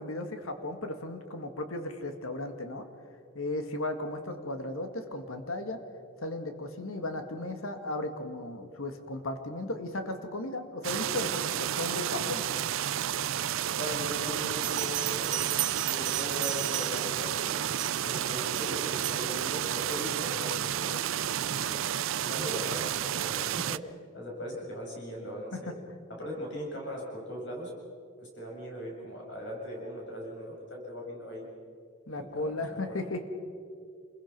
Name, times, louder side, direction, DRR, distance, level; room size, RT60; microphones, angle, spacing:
voice 1, 0.0-2.8 3.4-5.8 6.2-12.5 25.5-25.6 32.1-33.2, left 2 dB, 85° left, 7 dB, 2.0 m, -35 dB
sound 1, 10.8-23.8, right 10 dB, 75° right, 0.5 m, -31 dB
voice 2, 13.8-15.6 15.9-17.7 18.0-20.9 21.5-23.8 24.1-25.7 26.1-27.7 28.2-31.5 32.1-32.8, equal, 60° left, -2 dB, 7.4 m, -39 dB
Bell, 14.5-17.2 17.8-18.1 18.6-19.3, right 14 dB, 55° right, 1.0 m, -35 dB
28.5 x 21.5 x 6.1 m, 2.2 s
head